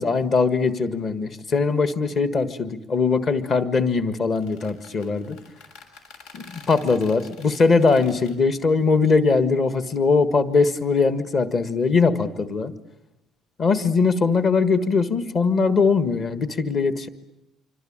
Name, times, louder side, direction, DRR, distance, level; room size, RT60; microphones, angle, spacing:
voice 1, 0.0-5.4 6.3-12.7 13.6-17.1, left 4 dB, 30° left, 11 dB, 1.6 m, -21 dB
sound 1, 4.2-8.4, left 4 dB, 75° left, 6.6 m, -47 dB
26.5 x 25.5 x 8.8 m, 0.86 s
cardioid pair, 175°, 0 cm